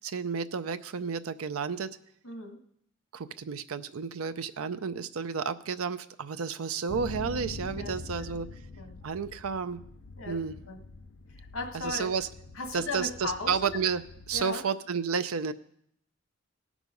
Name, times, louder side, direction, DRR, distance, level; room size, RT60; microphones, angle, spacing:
voice 1, 0.0-1.9 3.1-8.5 9.0-9.8 10.3-10.6 11.7-12.3 12.7-14.0 14.3-15.5, right 6 dB, 90° right, 10 dB, 0.5 m, -31 dB
voice 2, 2.2-2.6 7.7-7.9 8.3-8.4 8.8-9.0 10.2-10.4 10.7-10.8 11.3-12.1 12.6-13.5 14.3-14.6, left 3 dB, 85° left, 5 dB, 1.7 m, -37 dB
sound 1, 6.9-14.4, left 2 dB, 60° left, 0.7 m, -44 dB
17.5 x 6.1 x 5.3 m, 0.71 s
head